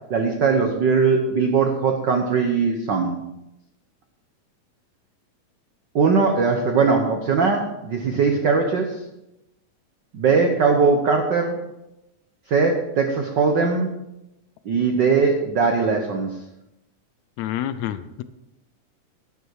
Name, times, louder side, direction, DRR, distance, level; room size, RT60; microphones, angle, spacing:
voice 1, 0.1-3.1 5.9-9.0 10.1-11.6 12.5-13.9 14.6-16.3, right 5 dB, 75° right, 4 dB, 1.0 m, -20 dB
voice 2, 17.4-18.2, left 11 dB, 80° left, 12 dB, 1.8 m, -28 dB
11.0 x 9.5 x 4.7 m, 0.90 s
omnidirectional pair, 3.4 m